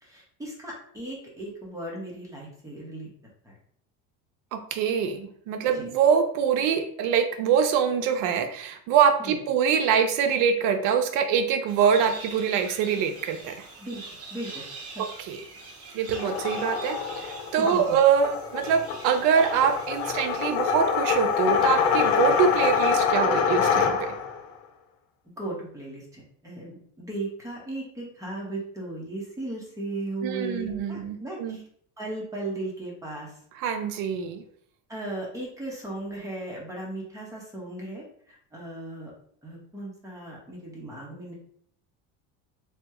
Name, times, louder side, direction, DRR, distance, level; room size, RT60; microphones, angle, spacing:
voice 1, 0.0-3.1 3.4-3.6 5.7-5.9 9.2-9.4 13.8-14.0 14.3-14.6 14.9-15.0 17.6-18.0 25.4-31.6 32.0-33.4 34.9-39.1 39.4-41.3, right 2 dB, 10° right, -3 dB, 1.0 m, -36 dB
voice 2, 4.5-13.5 15.0-15.4 15.9-24.1 30.2-31.6 33.6-34.4, right 7 dB, 60° right, 7 dB, 0.6 m, -24 dB
sound 1, 11.7-23.0, right 3 dB, 45° right, 1.0 m, -44 dB
sound 2, 16.1-24.4, left 6 dB, 90° left, 0.7 m, -25 dB
3.4 x 2.2 x 2.9 m, 0.63 s
cardioid pair, 130°, 34 cm